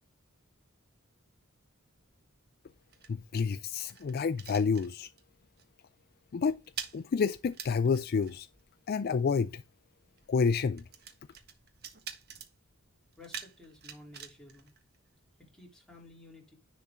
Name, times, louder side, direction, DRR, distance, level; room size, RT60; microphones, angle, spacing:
sound 1, 2.0-5.3 5.6-5.9 6.1-15.5, right 7 dB, 50° right, 1.5 m, -48 dB
voice 1, 3.1-5.1 6.3-6.6 6.9-8.5 8.9-9.6 10.3-10.8, left 5 dB, 45° left, 0.4 m, -29 dB
voice 2, 13.2-14.7 15.4-16.6, left 2 dB, 5° left, 3.2 m, -53 dB
10.5 x 4.3 x 3.5 m
head